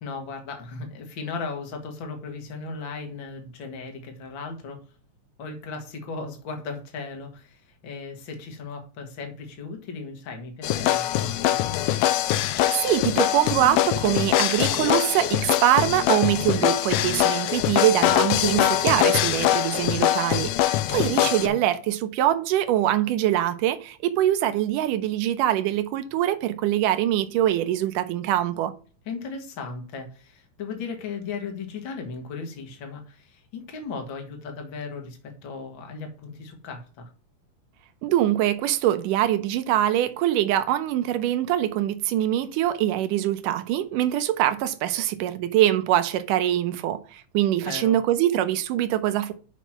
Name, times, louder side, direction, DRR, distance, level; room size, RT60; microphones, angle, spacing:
voice 1, 0.0-4.8 5.4-11.5 20.9-21.6 29.1-37.1 47.6-48.0, left 4 dB, 45° left, 1.9 m, -36 dB
sound 1, 10.6-21.5, left 13 dB, 90° left, 1.6 m, -23 dB
voice 2, 12.7-28.7 38.0-49.3, right 12 dB, 80° right, 2.3 m, -23 dB
6.2 x 5.8 x 5.8 m
omnidirectional pair, 3.8 m